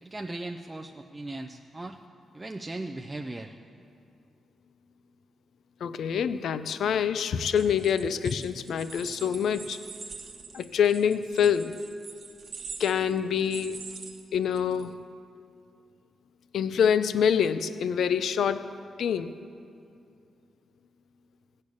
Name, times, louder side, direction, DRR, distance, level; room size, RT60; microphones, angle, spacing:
voice 1, 0.0-2.0 2.3-3.6, right 2 dB, 15° right, 3 dB, 0.4 m, -38 dB
voice 2, 5.8-9.8 10.5-11.8 12.8-13.9 14.3-15.0 16.5-18.7 19.0-19.3, left 7 dB, 70° left, 13 dB, 0.5 m, -26 dB
sound 1, 7.4-14.9, right 4 dB, 40° right, 1.0 m, -44 dB
17.0 x 6.6 x 8.5 m, 2.5 s
wide cardioid pair, 160°, 0 cm